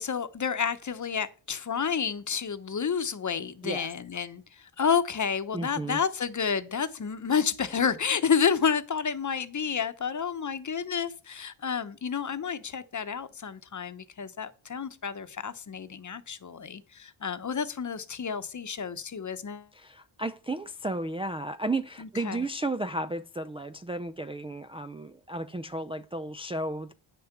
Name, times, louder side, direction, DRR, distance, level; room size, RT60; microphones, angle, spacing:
voice 1, 0.0-19.7 22.0-22.4, left 6 dB, 40° left, 1.0 m, -30 dB
voice 2, 5.5-6.0 19.7-26.9, right 2 dB, 15° right, 0.4 m, -33 dB
9.3 x 6.8 x 5.9 m
cardioid pair, 95°, 46 cm